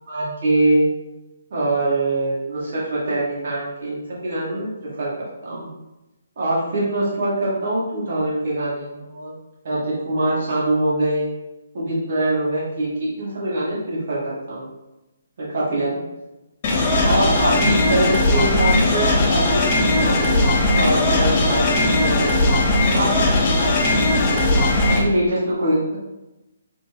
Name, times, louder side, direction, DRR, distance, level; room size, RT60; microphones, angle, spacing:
voice 1, 0.1-0.8 1.5-4.7 5.0-5.1 5.4-5.7 6.4-9.3 9.6-11.3 11.7-14.7 15.4-15.9 17.0-20.4 20.7-22.3 22.8-23.2 24.9-26.0, right 1 dB, 50° right, -7 dB, 1.3 m, -23 dB
sound 1, 16.6-25.0, left 2 dB, 35° left, 0.5 m, -18 dB
3.3 x 2.1 x 3.2 m, 0.99 s
figure-of-eight pair, 135°, 0 cm